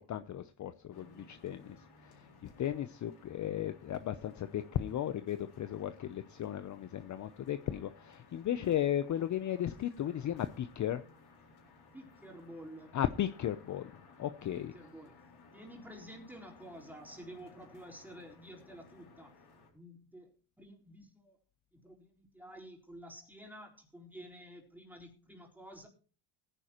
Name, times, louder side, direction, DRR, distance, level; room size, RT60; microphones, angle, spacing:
voice 1, 0.0-1.8 2.0-11.0 12.9-13.9 14.2-14.7, left 11 dB, 40° left, 11 dB, 0.6 m, -35 dB
sound 1, 0.9-19.7, left 4 dB, 60° left, 4.1 m, -60 dB
voice 2, 11.9-13.0 14.5-15.2 15.5-19.4 19.7-20.3 20.6-21.4 21.7-25.9, equal, 5° right, -1 dB, 4.0 m, -51 dB
18.0 x 9.9 x 3.0 m, 0.35 s
cardioid pair, 115°, 45 cm